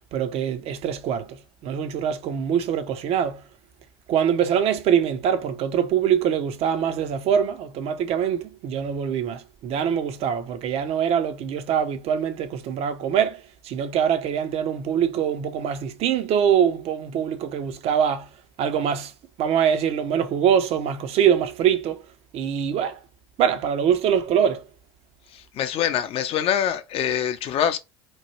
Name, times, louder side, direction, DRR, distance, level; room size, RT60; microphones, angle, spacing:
voice 1, 0.1-3.4 4.1-18.3 18.6-19.1 19.4-22.0 22.3-23.0 23.4-24.6, right 8 dB, 45° right, 0.6 m, -23 dB
voice 2, 25.3-27.8, left 9 dB, 45° left, 0.6 m, -24 dB
3.0 x 2.2 x 3.0 m
hypercardioid pair, 75°, 14 cm